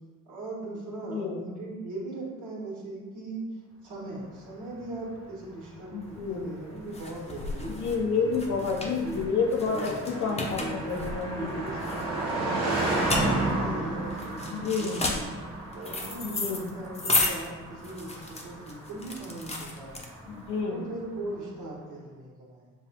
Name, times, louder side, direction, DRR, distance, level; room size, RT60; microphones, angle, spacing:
voice 1, 0.2-3.5 3.8-9.2 9.6-11.0 11.3-15.3 15.7-20.1 20.7-22.7, right 2 dB, 85° right, -5 dB, 1.4 m, -39 dB
voice 2, 1.1-1.4 5.9-6.5 7.7-9.9 10.2-11.6 14.5-15.0 16.2-16.7 20.3-20.8, left 5 dB, 75° left, 0 dB, 0.6 m, -29 dB
Car passing by, 4.7-21.1, right 2 dB, 60° right, 1.3 m, -34 dB
sound 1, 6.1-20.5, left 2 dB, 20° left, 0.7 m, -33 dB
6.8 x 2.4 x 2.8 m, 1.3 s
cardioid pair, 90°, 30 cm